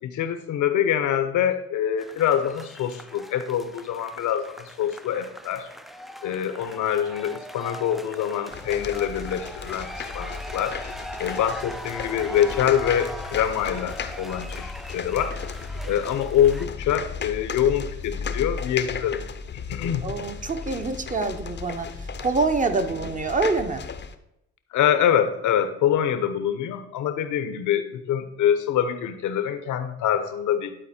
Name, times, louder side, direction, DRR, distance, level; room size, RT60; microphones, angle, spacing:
voice 1, 0.0-5.7 6.2-10.8 11.2-15.4 15.8-19.3 19.5-20.1 24.7-30.8, left 9 dB, 80° left, 9 dB, 0.9 m, -25 dB
sound 1, 2.0-16.7, equal, ahead, 0.3 m, -40 dB
sound 2, 8.5-24.2, left 5 dB, 40° left, 0.6 m, -35 dB
voice 2, 20.0-21.9 22.2-23.8, right 3 dB, 25° right, 7 dB, 0.8 m, -25 dB
11.0 x 4.2 x 4.3 m, 0.83 s
cardioid pair, 90°, 30 cm